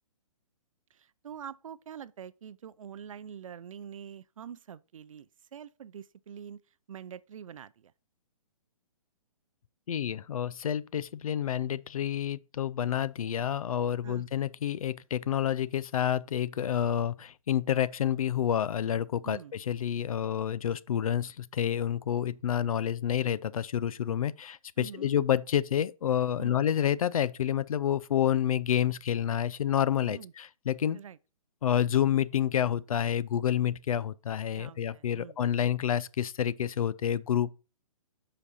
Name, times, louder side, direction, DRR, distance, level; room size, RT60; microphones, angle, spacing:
voice 1, 0.9-6.6 6.9-7.9 14.0-14.3 19.2-19.5 24.8-25.1 26.4-26.6 30.0-30.3 30.9-31.2 34.5-35.4, right 8 dB, 65° right, 0.5 m, -45 dB
voice 2, 9.9-31.0 31.6-37.5, left 10 dB, 75° left, 0.5 m, -29 dB
7.3 x 5.2 x 4.2 m
hypercardioid pair, 170°, 18 cm